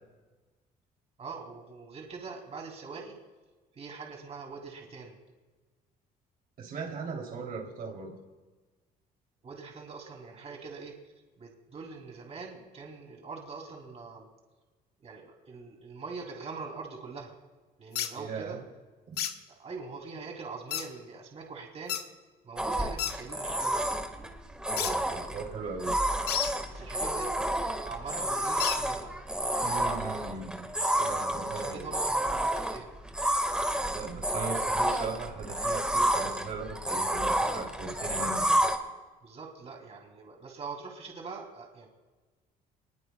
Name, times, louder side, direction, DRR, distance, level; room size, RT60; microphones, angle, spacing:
voice 1, 1.2-3.2 3.7-5.2 9.4-10.9 11.4-14.3 15.0-17.3 17.8-18.5 19.5-22.0 22.4-24.0 26.7-29.1 31.5-33.0 39.2-41.9, right 4 dB, 40° right, 0 dB, 3.1 m, -43 dB
voice 2, 6.6-8.1 18.1-18.6 19.1-19.2 24.7-26.0 29.6-30.6 31.0-31.9 33.9-38.6, right 4 dB, 60° right, 0 dB, 3.3 m, -38 dB
sound 1, 17.9-18.1 19.2-19.3 20.7-20.9 21.9-22.0 23.0-23.1 24.8-24.9 26.3-26.5 28.6-28.8, left 10 dB, 75° left, 1.3 m, -31 dB
sound 2, 22.6-38.8, right 1 dB, 5° right, 1.8 m, -30 dB
25.0 x 20.5 x 2.4 m, 1.3 s
cardioid pair, 110°, 17 cm